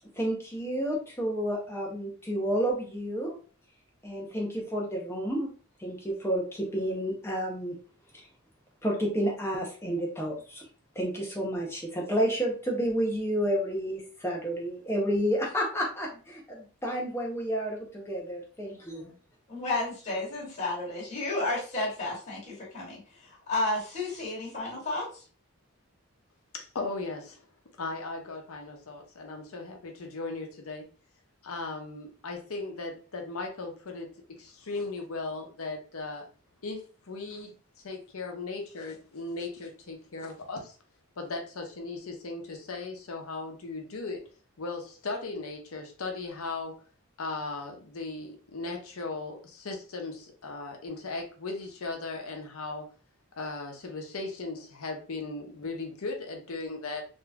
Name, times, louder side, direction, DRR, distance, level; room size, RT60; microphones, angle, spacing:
voice 1, 0.2-3.4 4.0-5.5 5.8-7.8 8.1-8.3 8.8-10.7 11.0-19.1, equal, 10° left, -2 dB, 0.6 m, -30 dB
voice 2, 19.5-25.2, left 2 dB, 35° left, -7 dB, 1.4 m, -32 dB
voice 3, 26.5-27.4 27.8-30.9 31.4-36.3 36.6-37.5 37.8-40.8 41.2-44.2 44.6-46.8 47.2-52.9 53.4-57.0, left 3 dB, 75° left, 3 dB, 0.7 m, -37 dB
3.6 x 2.6 x 2.2 m, 0.38 s
head